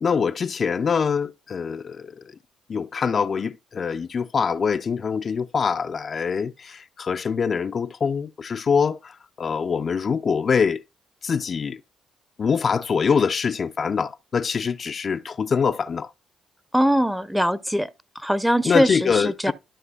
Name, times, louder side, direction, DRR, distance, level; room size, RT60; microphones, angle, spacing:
voice 1, 0.0-2.2 2.7-10.8 11.2-11.8 12.4-16.1 18.6-19.5, left 6 dB, 45° left, 0.4 m, -24 dB
voice 2, 16.7-17.9 18.2-19.5, equal, 5° right, 0.7 m, -21 dB
12.5 x 6.0 x 2.4 m
cardioid pair, 90°, 0 cm